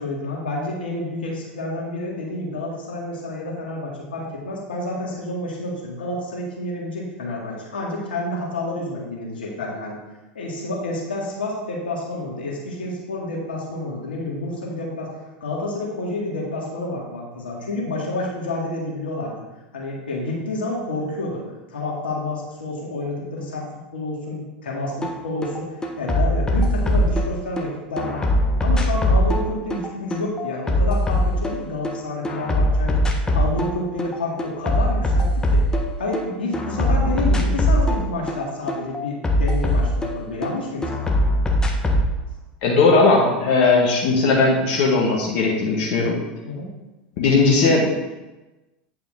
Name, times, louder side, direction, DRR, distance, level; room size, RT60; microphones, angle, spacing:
voice 1, 0.0-10.0 10.4-15.1 15.4-19.3 19.7-21.4 21.7-23.7 23.9-28.3 28.6-35.6 36.0-41.2 46.4-46.7, left 2 dB, 85° left, -3 dB, 2.0 m, -29 dB
sound 1, 25.0-25.1 25.4-27.6 28.0-31.9 32.2-33.7 34.0-36.2 36.5-40.5 40.8-42.1, left 1 dB, 15° left, 1.3 m, -21 dB
voice 2, 42.6-46.2 47.2-48.1, left 3 dB, 60° left, -3 dB, 1.7 m, -18 dB
9.3 x 5.7 x 3.8 m, 1.1 s
hypercardioid pair, 85°, 5 cm